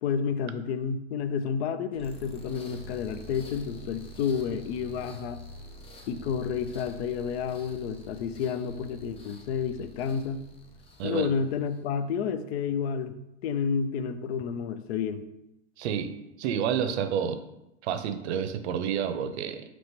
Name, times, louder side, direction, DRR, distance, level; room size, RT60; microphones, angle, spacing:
voice 1, 0.0-5.4 6.1-10.4 11.0-13.2 13.4-15.3, left 6 dB, 65° left, 11 dB, 0.5 m, -30 dB
sound 1, 1.9-11.9, equal, 15° left, 0.5 m, -47 dB
voice 2, 15.8-16.1 16.4-17.4 17.8-19.6, right 8 dB, 70° right, 10 dB, 0.5 m, -29 dB
3.0 x 2.9 x 4.3 m, 0.90 s
hypercardioid pair, 120°, 35 cm